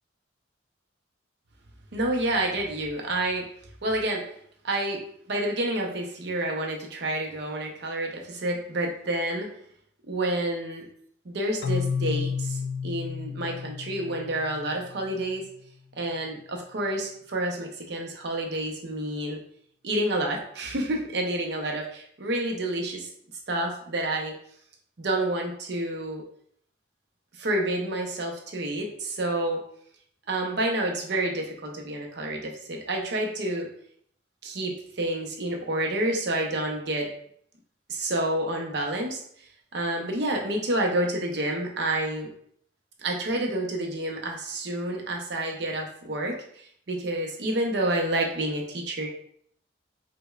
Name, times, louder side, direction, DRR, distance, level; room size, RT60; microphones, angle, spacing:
voice 1, 1.9-3.4 3.8-4.2 4.6-5.0 5.3-9.5 10.1-10.9 11.2-15.4 16.0-19.4 19.8-23.1 23.5-24.3 25.0-26.2 27.4-29.6 30.3-33.7 34.4-37.1 37.9-39.2 39.7-42.3 43.0-49.1, right 1 dB, 55° right, 1 dB, 0.6 m, -29 dB
Keyboard (musical), 11.6-15.3, left 6 dB, 55° left, 0.3 m, -31 dB
5.0 x 2.1 x 2.3 m, 0.65 s
head